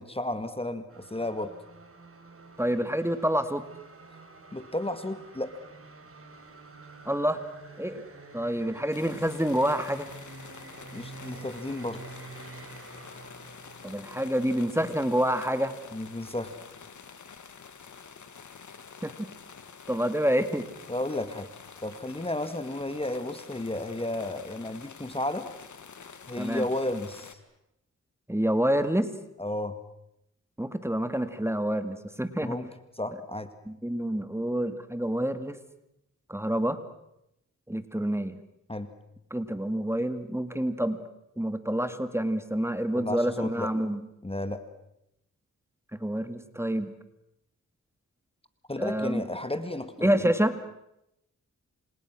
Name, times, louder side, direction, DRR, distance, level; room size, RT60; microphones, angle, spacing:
voice 1, 0.0-1.5 4.5-5.6 10.9-12.0 15.9-16.6 20.9-21.5 21.8-25.5 26.3-27.4 29.4-29.8 32.4-33.5 38.7-38.9 43.0-43.7 44.2-44.6 48.7-50.3, left 1 dB, 20° left, 10 dB, 1.9 m, -33 dB
sound 1, 0.9-15.8, right 3 dB, 45° right, 5.0 m, -48 dB
voice 2, 2.6-3.6 7.1-7.4 7.8-8.1 8.3-10.1 13.8-15.7 19.0-19.3 19.9-20.7 26.4-26.6 28.3-29.1 30.6-32.6 33.7-35.6 36.3-36.8 37.7-38.4 39.3-41.0 41.4-44.0 46.0-46.9 48.8-49.2 50.0-50.6, equal, 10° right, 10 dB, 2.0 m, -27 dB
sound 2, 8.9-27.3, left 6 dB, 70° left, 2.2 m, -48 dB
29.0 x 26.5 x 6.2 m, 0.83 s
cardioid pair, 65°, 31 cm